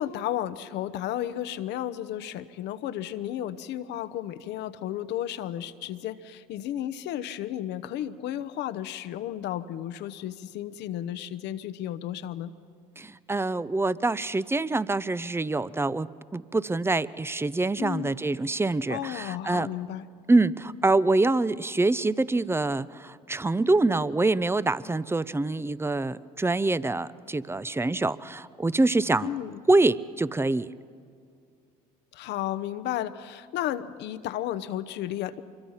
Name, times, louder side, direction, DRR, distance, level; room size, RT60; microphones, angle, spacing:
voice 1, 0.0-12.5 17.8-18.2 18.9-20.1 29.2-29.6 32.1-35.4, left 12 dB, 65° left, 13 dB, 0.9 m, -33 dB
voice 2, 13.0-19.7 20.3-29.3 29.7-30.7, right 2 dB, 10° right, 18 dB, 0.6 m, -25 dB
25.5 x 22.5 x 5.7 m, 2.3 s
hypercardioid pair, 60°, 19 cm